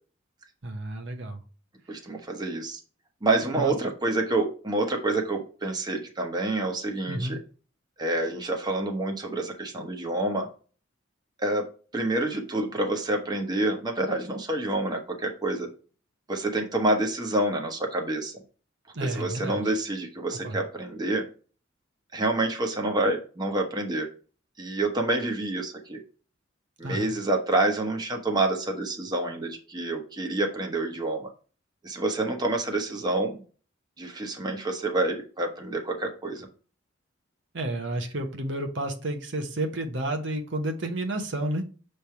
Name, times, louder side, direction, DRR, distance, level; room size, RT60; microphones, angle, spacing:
voice 1, 0.6-1.4 3.5-3.7 7.1-7.4 18.9-19.6 20.4-20.6 26.8-27.1 37.5-41.6, right 1 dB, 65° right, 3 dB, 1.0 m, -31 dB
voice 2, 1.9-2.8 3.2-7.4 8.0-10.5 11.4-11.6 11.9-15.7 16.3-18.3 19.0-21.2 22.1-24.1 24.6-26.0 26.8-31.3 31.8-33.3 34.0-36.5, right 2 dB, 20° right, 2 dB, 1.0 m, -28 dB
6.9 x 3.4 x 4.5 m, 0.38 s
head